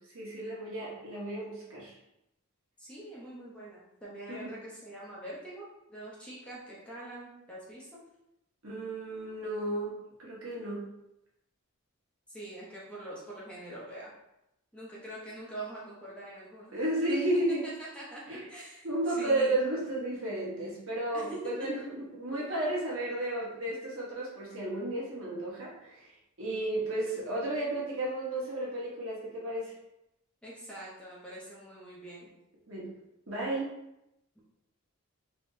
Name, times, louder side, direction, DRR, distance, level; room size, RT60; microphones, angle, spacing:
voice 1, 0.1-1.9 4.3-4.5 8.6-10.9 16.7-17.7 18.3-18.4 18.8-21.8 22.1-26.1 26.4-29.7 32.7-32.9 33.3-33.7, right 1 dB, 65° right, -5 dB, 1.1 m, -33 dB
voice 2, 2.8-8.0 12.3-14.1 14.7-16.8 17.3-17.4 17.8-19.6 21.1-21.7 22.3-22.4 30.4-32.3, right 1 dB, 5° left, -7 dB, 0.7 m, -44 dB
3.4 x 2.9 x 2.7 m, 0.86 s
head